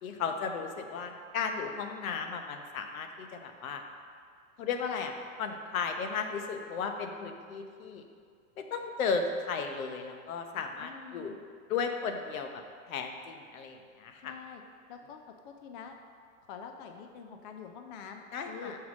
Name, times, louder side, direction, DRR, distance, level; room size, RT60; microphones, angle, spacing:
voice 1, 0.0-3.8 4.6-8.0 8.6-11.3 11.7-14.3 18.3-18.8, left 5 dB, 75° left, 5 dB, 0.9 m, -35 dB
voice 2, 10.8-11.4 14.2-14.6 14.9-15.2 15.4-15.9 16.5-18.7, left 6 dB, 40° left, 5 dB, 0.4 m, -46 dB
5.6 x 4.7 x 6.1 m, 2.1 s
supercardioid pair, 145°, 41 cm